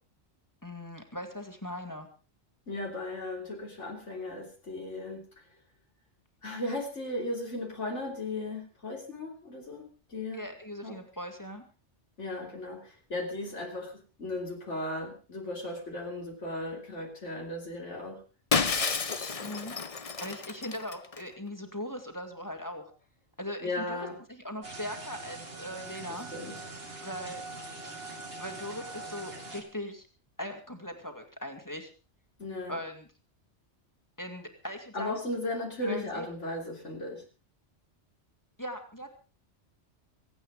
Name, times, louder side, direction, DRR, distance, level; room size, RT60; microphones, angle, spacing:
voice 1, 0.6-2.1 10.3-11.6 19.4-22.8 23.4-26.3 27.0-27.4 28.4-30.1 30.4-31.9 32.7-33.1 34.2-35.2 35.8-36.3 38.6-39.1, left 1 dB, 15° left, 4 dB, 2.5 m, -39 dB
voice 2, 2.7-5.2 6.4-10.5 10.8-11.0 12.2-13.9 14.2-18.2 23.6-24.2 26.1-26.6 32.4-32.8 34.9-37.2, left 2 dB, 90° left, 1 dB, 3.6 m, -36 dB
Shatter, 18.5-21.2, left 5 dB, 35° left, 0.9 m, -30 dB
sound 1, 24.6-29.6, right 3 dB, 55° right, 2.8 m, -42 dB
25.0 x 8.8 x 5.0 m, 0.35 s
omnidirectional pair, 1.2 m